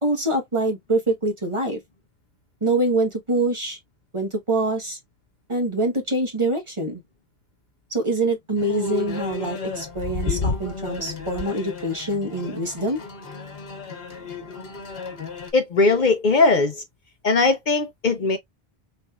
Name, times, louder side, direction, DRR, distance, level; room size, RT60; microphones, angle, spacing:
voice 1, 0.0-1.8 2.6-3.8 4.1-5.0 5.5-7.0 7.9-13.0, right 2 dB, 30° right, 1.1 m, -25 dB
sound 1, 8.6-15.5, left 4 dB, 75° left, 1.3 m, -32 dB
voice 2, 15.5-16.8 17.2-18.4, left 3 dB, 55° left, 0.8 m, -19 dB
4.3 x 3.2 x 2.3 m
omnidirectional pair, 1.0 m